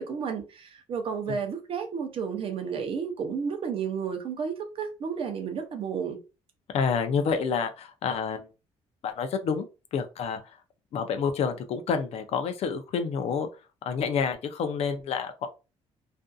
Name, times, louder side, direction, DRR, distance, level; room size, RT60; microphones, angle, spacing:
voice 1, 0.0-6.2, right 6 dB, 50° right, 0.6 m, -32 dB
voice 2, 6.7-8.5 9.0-9.7 9.9-10.6 10.9-13.5 13.8-15.5, left 6 dB, 60° left, 0.4 m, -28 dB
2.5 x 2.5 x 2.2 m
cardioid pair, 140°, 12 cm